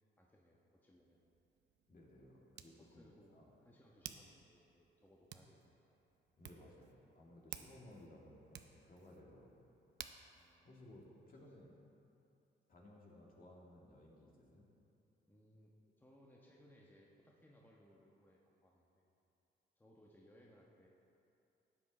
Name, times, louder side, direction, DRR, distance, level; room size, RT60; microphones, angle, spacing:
voice 1, 0.2-1.2 2.8-5.7 7.6-7.8 10.3-10.9 11.2-11.3 15.3-19.0 19.8-20.9, equal, 10° left, -3 dB, 1.2 m, -66 dB
Hands, 1.0-11.7, right 9 dB, 60° right, 0.7 m, -57 dB
voice 2, 1.9-3.5 6.4-9.7 10.6-11.7 12.7-14.7, left 1 dB, 45° left, -3 dB, 2.4 m, -59 dB
13.0 x 8.5 x 4.3 m, 2.8 s
cardioid pair, 90°, 20 cm